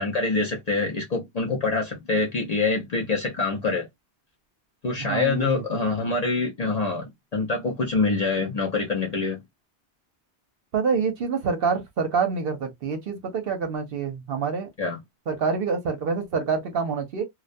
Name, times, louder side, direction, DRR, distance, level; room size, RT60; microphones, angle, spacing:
voice 1, 0.0-3.9 4.8-9.4 14.8-15.0, left 3 dB, 45° left, 0.6 m, -25 dB
voice 2, 5.0-5.5 10.7-14.7 15.3-17.2, right 5 dB, 60° right, 0.8 m, -26 dB
2.3 x 2.2 x 2.5 m
omnidirectional pair, 1.2 m